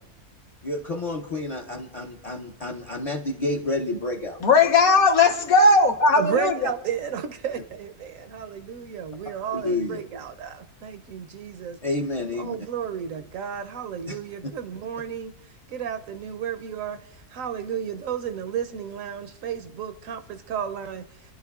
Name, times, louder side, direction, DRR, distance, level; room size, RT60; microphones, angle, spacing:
voice 1, 0.6-4.4 9.5-10.0 11.8-12.6 14.1-14.5, left 2 dB, 40° left, 0.5 m, -30 dB
voice 2, 4.4-6.7, left 3 dB, 70° left, 1.5 m, -18 dB
voice 3, 6.2-11.8 12.4-15.3 15.7-17.0 17.3-21.1, right 8 dB, 70° right, 0.9 m, -32 dB
29.5 x 11.0 x 2.4 m
omnidirectional pair, 1.6 m